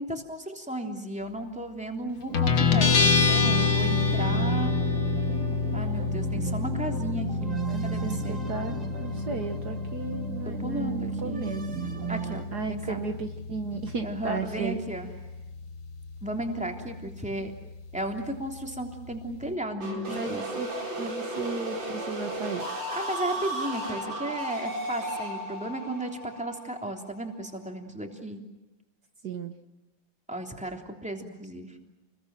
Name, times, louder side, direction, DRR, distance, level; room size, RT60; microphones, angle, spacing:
voice 1, 0.0-4.8 5.7-8.4 10.4-11.5 12.1-13.0 14.0-15.1 16.2-17.5 17.9-20.4 22.9-28.4 30.3-31.8, right 1 dB, 5° right, 2 dB, 3.2 m, -34 dB
Guitar, 2.3-19.5, left 5 dB, 75° left, 2.4 m, -29 dB
sound 1, 2.3-12.4, right 6 dB, 45° right, 2.3 m, -35 dB
voice 2, 7.7-11.6 12.5-14.8 20.1-20.7 21.0-22.6 29.2-29.5, right 5 dB, 60° right, 5 dB, 1.8 m, -34 dB
sound 2, 19.8-27.5, right 1 dB, 80° right, 5.2 m, -34 dB
29.5 x 22.0 x 7.6 m, 1.0 s
omnidirectional pair, 2.1 m